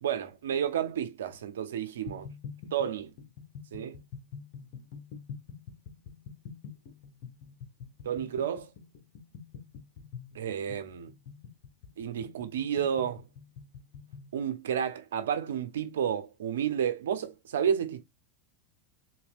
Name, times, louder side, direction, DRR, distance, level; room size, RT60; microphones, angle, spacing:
voice 1, 0.0-2.3 2.7-3.1 3.7-4.0 8.0-8.7 10.3-11.1 12.0-13.2 14.3-18.0, right 8 dB, 85° right, 1.0 m, -31 dB
sound 1, 2.1-14.3, left 6 dB, 60° left, 1.3 m, -46 dB
4.1 x 3.1 x 2.6 m
hypercardioid pair, 110°, 0 cm